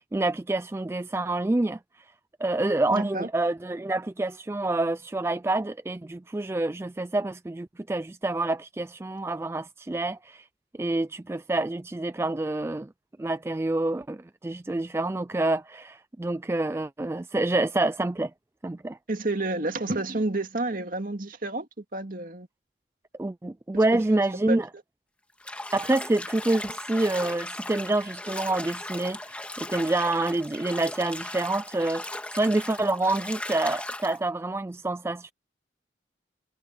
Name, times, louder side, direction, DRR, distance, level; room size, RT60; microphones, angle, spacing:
voice 1, 0.0-1.8 2.4-10.4 10.8-12.9 13.2-18.3 18.6-19.0 23.2-24.7 25.7-32.0 32.3-35.3, right 2 dB, 15° right, 0.3 m, -27 dB
voice 2, 2.9-3.3 19.1-21.7 21.9-22.5 23.9-24.0 24.5-24.6, right 2 dB, 50° right, 2.2 m, -29 dB
Bathtub (filling or washing), 25.4-34.2, left 1 dB, 5° left, 1.7 m, -37 dB
head